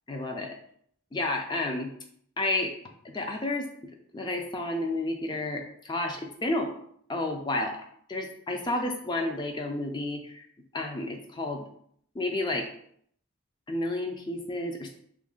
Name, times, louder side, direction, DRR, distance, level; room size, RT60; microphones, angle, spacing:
voice 1, 0.1-0.6 1.1-1.9 2.4-2.7 3.0-3.7 4.1-6.7 7.1-7.7 8.1-10.4 10.7-11.7 12.2-12.7 13.7-14.9, left 2 dB, 20° left, 3 dB, 0.3 m, -31 dB
3.0 x 2.5 x 3.6 m, 0.65 s
head